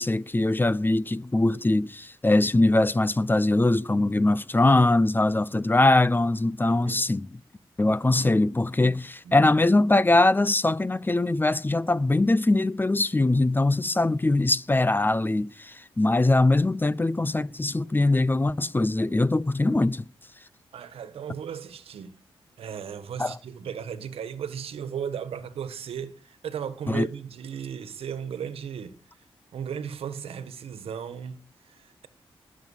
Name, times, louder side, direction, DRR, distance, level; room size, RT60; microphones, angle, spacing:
voice 1, 0.0-7.3 7.8-20.0 23.2-23.3 26.9-27.1, left 2 dB, 20° left, 0.7 m, -22 dB
voice 2, 6.6-7.1 8.2-8.4 9.2-9.5 20.7-22.2 22.6-29.0 29.5-32.1, right 8 dB, 90° right, 1.5 m, -36 dB
20.0 x 7.5 x 7.3 m
cardioid pair, 65°, 10 cm